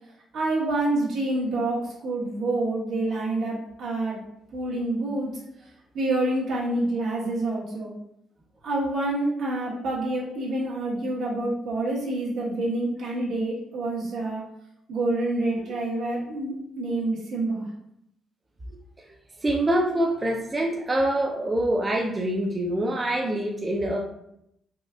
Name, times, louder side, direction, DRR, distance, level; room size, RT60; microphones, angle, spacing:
voice 1, 0.3-4.2 4.5-5.3 5.9-7.9 8.6-14.4 14.9-17.7, right 2 dB, 75° right, -5 dB, 1.2 m, -27 dB
voice 2, 19.4-24.0, right 1 dB, 25° right, -1 dB, 0.4 m, -25 dB
4.3 x 2.3 x 2.3 m, 0.78 s
cardioid pair, 90°, 0 cm